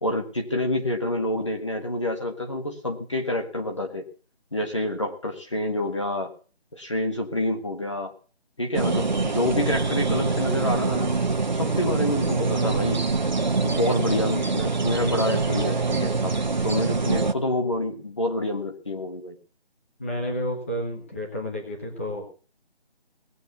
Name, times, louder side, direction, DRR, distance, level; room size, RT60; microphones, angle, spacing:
voice 1, 0.0-4.1 4.5-6.3 6.7-8.1 8.6-11.2 11.5-13.0 13.6-16.4 16.6-19.4, left 1 dB, 30° left, 3 dB, 1.5 m, -27 dB
sound 1, 8.7-17.3, right 3 dB, 45° right, 1.2 m, -24 dB
voice 2, 20.0-22.3, equal, 15° left, 0 dB, 1.6 m, -31 dB
19.0 x 7.8 x 8.0 m, 0.39 s
figure-of-eight pair, 180°, 31 cm